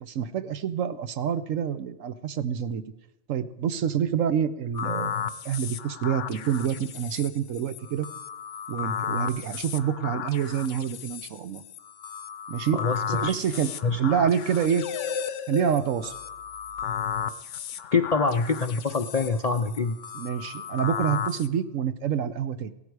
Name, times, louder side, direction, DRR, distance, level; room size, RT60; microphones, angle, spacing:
voice 1, 0.0-2.8 3.3-8.1 8.7-11.6 12.5-12.8 13.1-14.8 15.5-16.1 20.1-22.7, right 8 dB, 85° right, 12 dB, 1.2 m, -27 dB
sound 1, 4.7-21.5, left 8 dB, 70° left, 1.0 m, -34 dB
voice 2, 12.7-13.3 13.8-14.0 17.9-20.0, left 4 dB, 50° left, 8 dB, 0.4 m, -25 dB
17.0 x 12.5 x 4.8 m, 0.90 s
omnidirectional pair, 1.3 m